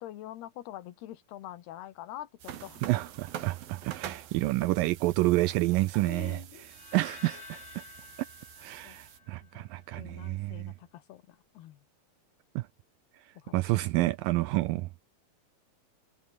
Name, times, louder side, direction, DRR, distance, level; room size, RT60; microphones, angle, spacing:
voice 1, 0.0-2.8 6.0-6.7 7.3-7.4 8.8-9.0 9.4-9.7 9.9-11.9 13.4-13.6, left 13 dB, 85° left, 3.4 m, -45 dB
sound 1, 2.4-9.2, right 11 dB, 70° right, 3.5 m, -46 dB
voice 2, 2.8-6.4 6.9-7.8 8.6-10.7 12.6-12.7 13.5-15.0, right 19 dB, 85° right, 2.1 m, -29 dB
sound 2, 6.6-9.8, left 4 dB, 30° left, 4.4 m, -50 dB
omnidirectional pair, 4.6 m